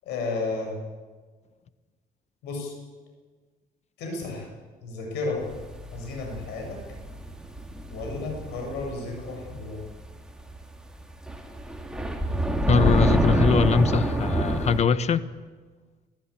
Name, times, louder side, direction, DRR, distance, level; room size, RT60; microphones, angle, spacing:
voice 1, 0.0-0.8 2.4-2.7 4.0-4.5 4.8-5.5 5.9-6.8 7.9-9.8, left 3 dB, 85° left, 1 dB, 7.9 m, -32 dB
sound 1, 5.5-10.1 10.4-10.6 11.0-14.8, right 1 dB, 5° right, 2.5 m, -26 dB
voice 2, 12.7-15.3, left 5 dB, 40° left, 14 dB, 1.1 m, -22 dB
22.5 x 15.0 x 8.6 m, 1.4 s
cardioid pair, 110°, 17 cm